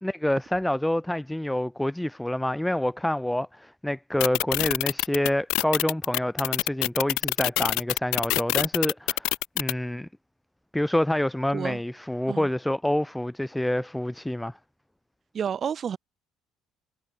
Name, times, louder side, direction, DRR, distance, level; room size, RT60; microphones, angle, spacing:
voice 1, 0.0-9.3 9.6-10.1 10.7-14.6, left 1 dB, 5° left, 1.4 m, -27 dB
sound 1, 4.2-9.7, left 22 dB, 90° left, 0.8 m, -25 dB
voice 2, 15.3-16.0, right 8 dB, 35° right, 4.3 m, -30 dB
cardioid pair, 150°, 0 cm